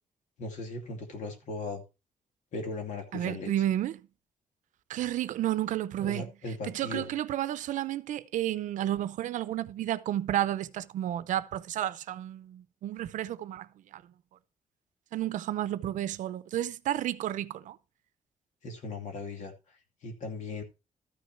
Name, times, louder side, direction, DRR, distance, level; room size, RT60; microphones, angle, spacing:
voice 1, 0.4-1.8 2.5-3.5 6.0-7.1 18.6-20.6, left 3 dB, 70° left, 2.7 m, -38 dB
voice 2, 3.1-4.0 4.9-6.3 6.7-14.0 15.1-17.8, right 12 dB, 80° right, 0.6 m, -31 dB
13.5 x 6.3 x 4.4 m
wide cardioid pair, 165°, 13 cm